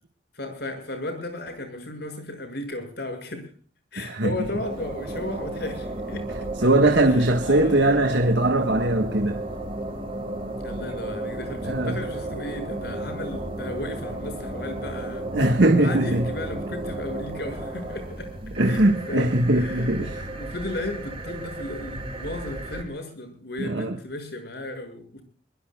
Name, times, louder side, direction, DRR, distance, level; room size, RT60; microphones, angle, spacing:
voice 1, 0.3-3.5 3.9-6.5 7.4-7.9 10.6-15.2 15.8-18.3 18.6-18.8 19.1-25.2, left 1 dB, 60° left, 6.7 m, -35 dB
voice 2, 4.0-4.3 6.6-9.4 11.6-12.0 15.3-16.3 18.6-20.2 21.9-22.0 23.6-24.0, right 1 dB, 65° right, 1.6 m, -21 dB
sound 1, 4.4-22.8, right 1 dB, 30° right, 3.8 m, -34 dB
23.5 x 22.5 x 2.4 m
head